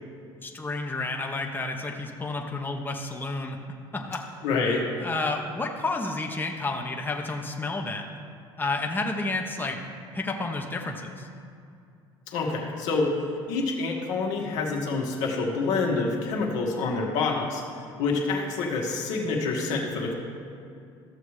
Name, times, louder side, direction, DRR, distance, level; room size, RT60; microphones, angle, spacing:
voice 1, 0.4-3.6 3.9-4.2 4.7-8.2 8.6-9.8 10.1-11.3, left 3 dB, 15° left, 1 dB, 0.9 m, -31 dB
voice 2, 4.4-4.9 12.3-13.1 13.5-17.6 18.0-20.1, left 3 dB, 75° left, -1 dB, 1.4 m, -27 dB
14.0 x 7.0 x 3.2 m, 2.5 s
hypercardioid pair, 70°, 13 cm